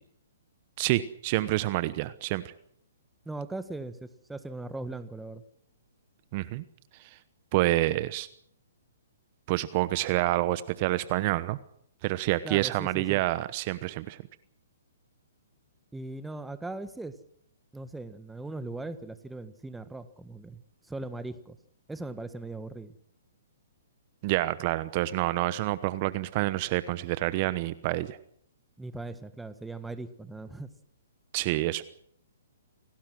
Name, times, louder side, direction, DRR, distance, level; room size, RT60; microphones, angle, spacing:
voice 1, 0.8-2.5 6.3-6.6 7.0-7.2 7.5-8.3 9.5-11.6 12.0-14.2 24.2-28.2 31.3-31.8, right 17 dB, 40° right, 15 dB, 1.0 m, -28 dB
voice 2, 3.2-5.4 12.4-13.2 15.9-17.2 17.7-20.6 20.9-21.6 21.9-23.0 28.8-30.7, right 2 dB, 5° right, 11 dB, 1.5 m, -39 dB
27.5 x 18.5 x 6.2 m, 0.66 s
figure-of-eight pair, 125°, 0 cm